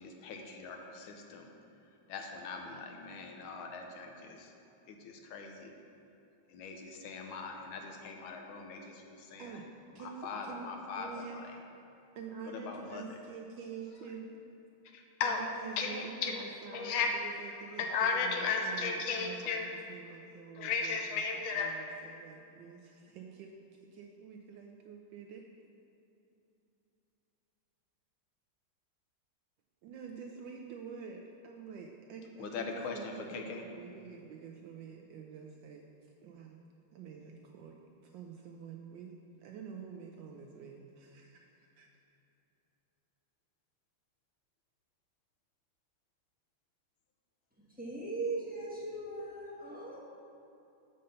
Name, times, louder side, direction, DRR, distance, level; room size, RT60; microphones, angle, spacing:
voice 1, 0.0-1.5 2.1-4.5 4.9-5.7 6.5-9.6 10.0-11.5 12.5-13.2 14.9-15.4 15.8-16.4 16.7-17.1 17.8-19.7 20.6-21.7 32.4-33.7, left 4 dB, 75° left, 3 dB, 1.4 m, -37 dB
voice 2, 9.9-10.7 11.0-11.4 12.1-14.4 15.2-21.2 21.5-23.6 23.9-25.4 29.8-32.6 32.9-35.9 36.2-36.6 36.9-37.8 38.0-39.1 39.4-41.9, right 6 dB, 75° right, 2 dB, 1.1 m, -47 dB
voice 3, 47.8-50.0, right 3 dB, 5° right, -6 dB, 0.7 m, -38 dB
5.5 x 5.3 x 6.5 m, 2.8 s
omnidirectional pair, 2.3 m